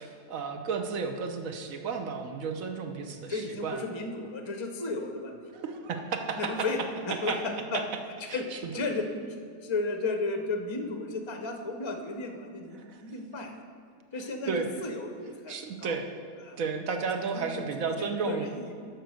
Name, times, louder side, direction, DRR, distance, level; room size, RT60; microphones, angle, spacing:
voice 1, 0.0-3.8 5.5-6.7 7.1-7.4 7.7-7.8 8.3-8.7 12.8-13.0 14.5-14.7 15.5-16.1 16.6-18.5, right 5 dB, 70° right, 5 dB, 1.2 m, -33 dB
voice 2, 2.9-5.4 6.4-6.8 7.1-7.8 8.2-8.5 8.7-9.1 9.4-13.6 14.1-16.0 16.4-16.6 17.3-17.6 18.0-18.7, left 3 dB, 30° left, 4 dB, 0.5 m, -34 dB
12.0 x 4.6 x 6.4 m, 2.3 s
omnidirectional pair, 1.5 m